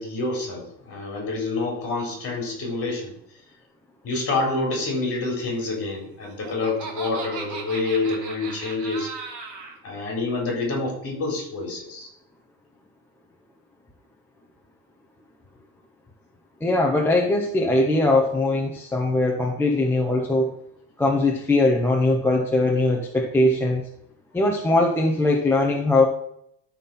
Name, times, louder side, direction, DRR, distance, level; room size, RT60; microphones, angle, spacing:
voice 1, 0.0-3.1 4.0-9.1 9.8-12.1, left 3 dB, 30° left, 0 dB, 3.8 m, -27 dB
Laughter, 6.0-9.8, right 4 dB, 40° right, 2.2 m, -37 dB
voice 2, 16.6-20.5 21.0-23.8 24.3-26.1, left 2 dB, 5° left, -2 dB, 0.6 m, -21 dB
13.0 x 4.3 x 5.5 m, 0.74 s
cardioid pair, 170°, 47 cm